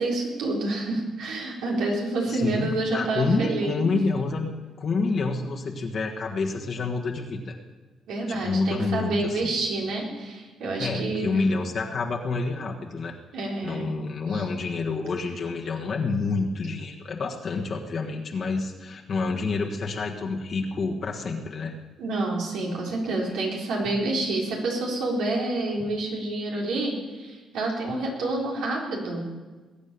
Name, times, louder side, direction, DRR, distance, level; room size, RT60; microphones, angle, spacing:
voice 1, 0.0-3.9 8.1-11.3 13.3-13.9 14.3-14.5 22.0-29.2, right 2 dB, 85° right, -2 dB, 4.2 m, -28 dB
voice 2, 2.3-4.5 4.8-7.5 8.3-9.5 10.8-13.1 13.6-21.7 23.2-23.4, left 3 dB, 50° left, 0 dB, 1.5 m, -28 dB
20.5 x 8.5 x 6.9 m, 1.3 s
cardioid pair, 90°, 0 cm